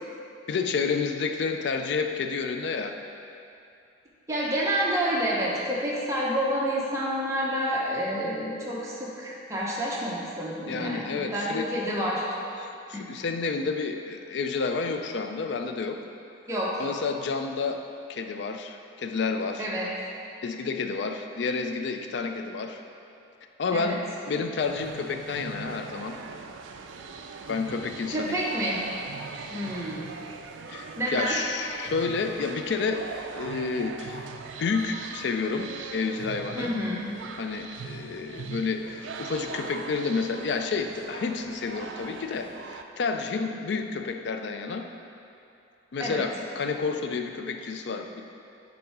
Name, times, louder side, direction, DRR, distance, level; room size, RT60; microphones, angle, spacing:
voice 1, 0.5-3.0 10.7-11.7 12.6-16.0 16.8-17.8 18.1-19.7 20.4-22.8 23.6-26.2 27.5-28.4 30.7-34.3 34.6-36.8 37.4-44.9 45.9-48.2, left 4 dB, 60° left, 6 dB, 0.3 m, -30 dB
voice 2, 4.3-12.2 12.9-13.0 16.5-16.8 19.6-19.9 23.7-24.0 28.1-28.8 29.5-30.1 31.0-31.4 36.5-37.1 46.0-46.2, equal, 15° right, -6 dB, 0.8 m, -29 dB
sound 1, 24.6-42.8, right 5 dB, 70° right, 0.3 m, -41 dB
7.5 x 2.7 x 4.7 m, 2.6 s
head